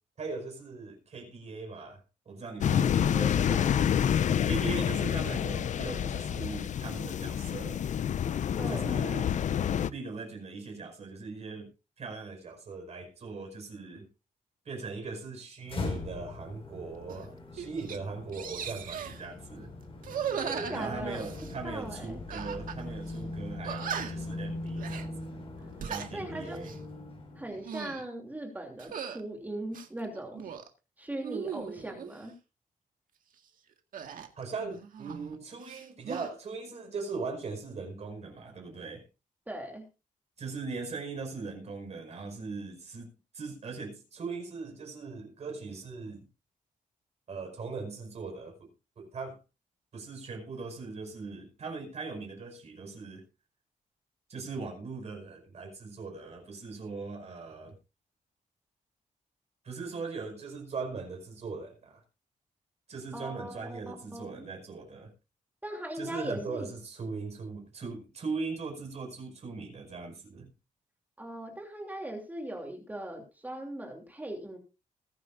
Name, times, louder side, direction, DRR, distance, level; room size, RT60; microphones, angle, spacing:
voice 1, 0.2-3.8 4.4-7.8 8.7-9.3 9.8-11.7 12.0-14.1 14.7-19.7 20.7-25.4 25.9-26.7 34.4-39.0 40.4-46.2 47.3-48.7 49.0-49.4 49.9-53.2 54.3-57.8 59.6-62.0 62.9-65.1 66.0-70.5, right 4 dB, 50° right, 5.3 m, -40 dB
sound 1, 2.6-9.9, left 9 dB, 60° left, 0.5 m, -28 dB
voice 2, 2.7-3.8 8.6-9.0 20.4-21.2 21.6-22.2 26.1-26.7 27.4-30.5 31.0-32.3 39.5-39.9 63.1-64.4 65.6-66.7 71.2-74.6, right 1 dB, 10° right, 2.9 m, -39 dB
sound 2, 15.7-27.7, left 2 dB, 40° left, 6.2 m, -41 dB
sound 3, 17.1-17.3 17.6-18.0 18.3-19.2 20.0-21.5 22.3-22.8 23.1-23.2 23.6-24.3 24.8-25.1 25.6-26.1 26.6-26.8 27.5-28.1 28.8-29.2 29.7-30.7 31.2-32.1 33.9-35.4 35.6-36.3, right 8 dB, 80° right, 1.8 m, -38 dB
21.5 x 9.6 x 2.6 m
wide cardioid pair, 150°, 14 cm